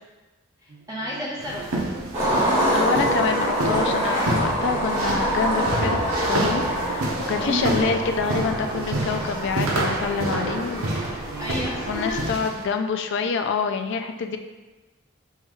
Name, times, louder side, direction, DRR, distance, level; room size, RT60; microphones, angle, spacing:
voice 1, 0.6-1.8 7.5-7.8 11.4-12.3, equal, 15° right, -6 dB, 0.7 m, -30 dB
sound 1, 0.7-12.0, right 3 dB, 55° right, 0.8 m, -40 dB
sound 2, 1.4-12.6, right 1 dB, 90° right, 0.6 m, -29 dB
Skateboard, 2.1-12.3, equal, 35° right, 1.3 m, -26 dB
voice 2, 2.7-6.0 6.3-10.9 11.9-14.4, left 5 dB, 55° left, 7 dB, 0.3 m, -26 dB
5.6 x 2.3 x 3.0 m, 1.2 s
head